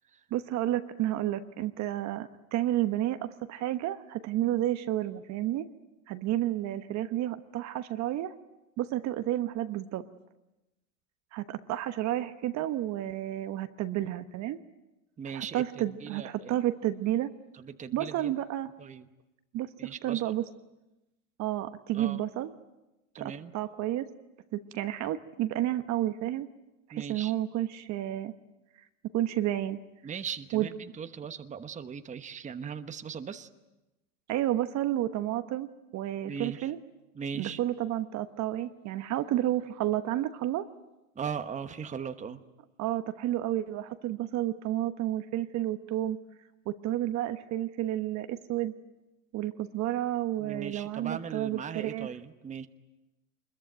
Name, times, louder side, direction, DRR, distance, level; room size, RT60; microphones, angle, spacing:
voice 1, 0.3-5.7 6.1-8.3 8.8-10.0 11.3-14.6 15.3-17.3 17.9-18.7 19.5-19.7 20.0-20.4 21.4-22.5 23.2-24.1 24.5-26.5 26.9-28.3 29.1-29.8 30.5-30.7 34.3-36.8 37.3-40.7 42.8-46.2 46.7-48.7 49.3-52.1, right 13 dB, 40° right, 10 dB, 1.2 m, -31 dB
voice 2, 15.2-16.6 17.5-18.3 18.8-19.1 19.8-20.3 21.9-22.2 23.1-23.5 26.9-27.3 30.0-33.5 36.2-36.7 37.1-37.6 41.1-42.4 50.4-52.7, right 6 dB, 15° right, 9 dB, 1.2 m, -39 dB
25.0 x 21.5 x 9.2 m, 1.0 s
hypercardioid pair, 115°, 43 cm